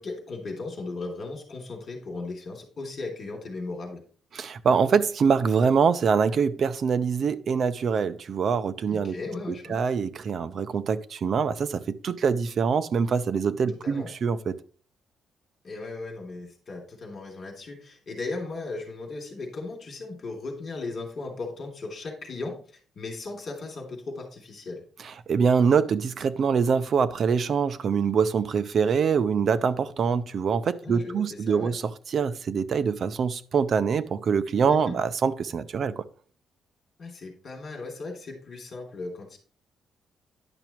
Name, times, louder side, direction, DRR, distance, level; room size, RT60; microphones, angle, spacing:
voice 1, 0.0-4.0 8.9-9.8 13.7-14.1 15.6-22.6 22.9-24.8 30.8-31.7 34.7-35.0 37.0-39.4, left 3 dB, 35° left, 3.3 m, -37 dB
voice 2, 4.3-9.2 9.5-14.6 25.3-31.8 32.1-36.0, right 6 dB, 40° right, 0.5 m, -24 dB
11.0 x 6.0 x 4.4 m
cardioid pair, 165°, 0 cm